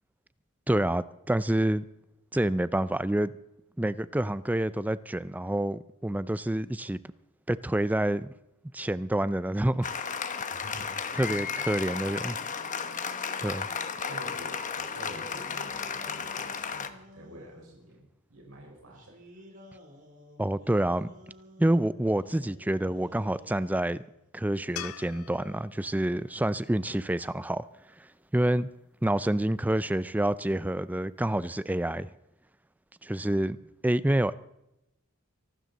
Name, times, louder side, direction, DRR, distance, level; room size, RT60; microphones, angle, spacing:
voice 1, 0.7-1.9 2.3-3.3 3.8-7.0 7.5-8.3 8.7-9.9 11.2-12.4 13.4-13.7 20.4-21.1 21.6-24.0 24.3-27.7 28.0-28.1 28.3-28.7 29.0-32.1 33.0-33.6 33.8-34.3, right 1 dB, 10° right, 16 dB, 0.4 m, -27 dB
Applause, 9.8-16.9, left 6 dB, 35° left, 1.0 m, -34 dB
voice 2, 10.5-11.3 14.1-19.1 26.3-26.5 33.3-33.6, right 1 dB, 75° right, 0 dB, 4.9 m, -48 dB
sound 1, 10.9-14.0 14.8-17.8 18.9-24.2, equal, 40° right, 3.5 m, -52 dB
sound 2, 24.8-28.0 31.3-31.4, left 10 dB, 85° left, 0.6 m, -45 dB
25.0 x 12.5 x 4.1 m, 0.87 s
head